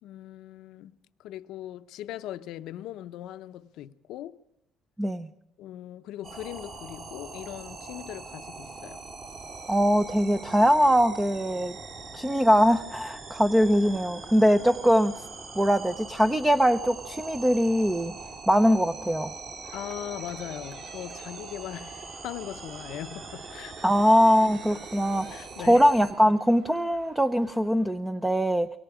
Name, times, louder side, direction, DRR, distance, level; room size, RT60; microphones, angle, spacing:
voice 1, 0.0-4.4 5.6-9.0 19.7-24.0 24.7-24.8 25.3-25.9, left 13 dB, 75° left, 0.8 m, -40 dB
voice 2, 5.0-5.3 9.7-11.8 12.1-15.2 15.5-18.1 18.5-19.3 23.8-28.7, equal, 5° right, 0.7 m, -22 dB
sound 1, 6.2-26.1, right 4 dB, 50° right, 6.1 m, -42 dB
sound 2, 19.6-27.9, right 3 dB, 75° right, 5.5 m, -53 dB
25.0 x 23.5 x 5.0 m
cardioid pair, 120°, 0 cm